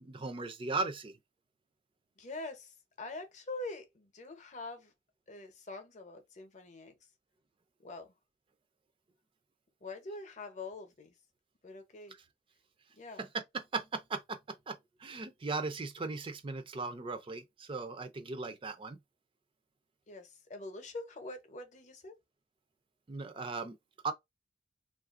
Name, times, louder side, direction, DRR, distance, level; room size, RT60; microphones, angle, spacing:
voice 1, 0.0-1.1 13.3-19.0 23.1-23.8 24.0-24.1, right 3 dB, 30° right, 0.4 m, -38 dB
voice 2, 2.2-4.9 5.3-6.9 7.8-8.1 9.8-11.1 11.6-12.2 12.9-13.3 20.1-22.2, left 2 dB, 40° left, 0.7 m, -44 dB
3.2 x 2.4 x 2.4 m
head